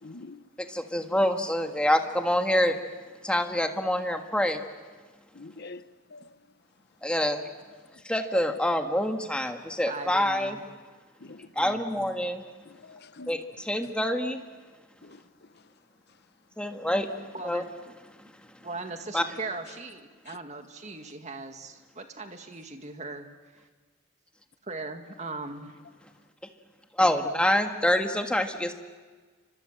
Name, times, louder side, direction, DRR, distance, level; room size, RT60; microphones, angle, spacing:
voice 1, 0.0-0.4 5.3-6.4 8.5-8.6 11.2-11.5 12.6-13.3 13.8-14.0 15.0-15.7 20.3-20.4, left 3 dB, 50° left, 0.9 m, -47 dB
voice 2, 0.7-2.8 3.2-4.6 7.0-7.4 8.1-10.6 11.6-12.4 13.3-14.4 16.6-17.1 17.4-17.6 19.1-19.2 27.0-28.7, left 1 dB, 5° left, 1.6 m, -26 dB
voice 3, 9.9-10.6 11.6-12.1 17.3-17.9 18.6-23.3 23.5-23.6 24.6-25.8, right 3 dB, 30° right, 2.1 m, -39 dB
29.5 x 25.0 x 7.6 m
head